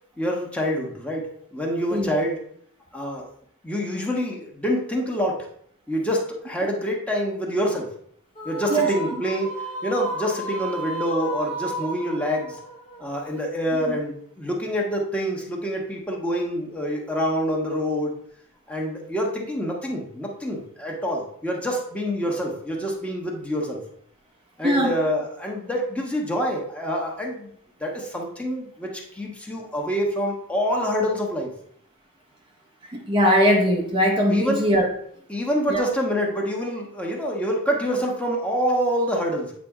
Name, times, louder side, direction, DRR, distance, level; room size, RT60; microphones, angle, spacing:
voice 1, 0.2-2.4 2.9-3.3 3.6-5.5 5.9-7.9 8.4-9.5 9.8-12.6 13.0-18.1 18.7-23.8 24.6-27.5 27.8-31.5 34.3-34.6 35.3-39.5, equal, 5° left, -1 dB, 1.2 m, -26 dB
sound 1, 8.4-13.8, right 1 dB, 30° left, 1.3 m, -33 dB
voice 2, 24.6-25.0 32.9-34.9 35.7-35.8, equal, 25° right, 0 dB, 0.8 m, -20 dB
8.6 x 3.3 x 4.9 m, 0.65 s
head